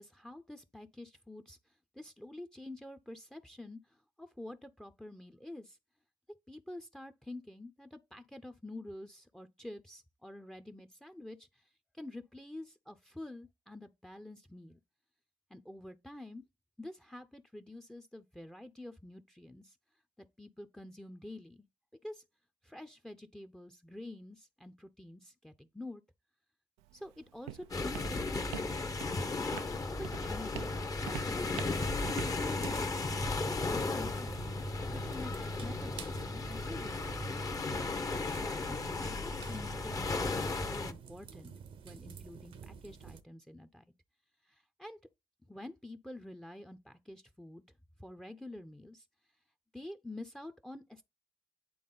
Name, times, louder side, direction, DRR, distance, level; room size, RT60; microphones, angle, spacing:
voice 1, 0.0-1.6 1.9-5.8 6.5-11.6 11.9-14.8 15.5-16.4 16.8-19.8 20.2-21.6 22.0-22.2 22.6-26.0 26.9-28.7 29.0-29.6 29.9-31.7 32.2-34.4 34.9-37.3 38.0-41.5 41.8-43.8 44.5-45.0 45.5-47.6 48.0-49.0 49.7-51.0, left 1 dB, 5° left, 0.7 m, -48 dB
Walk footsteps, 26.8-34.8, right 14 dB, 85° right, 0.4 m, -48 dB
sound 1, 27.7-40.9, left 3 dB, 35° left, 1.0 m, -35 dB
sound 2, 31.6-43.2, right 6 dB, 65° right, 0.8 m, -49 dB
8.6 x 3.4 x 3.9 m
supercardioid pair, 60°, 10 cm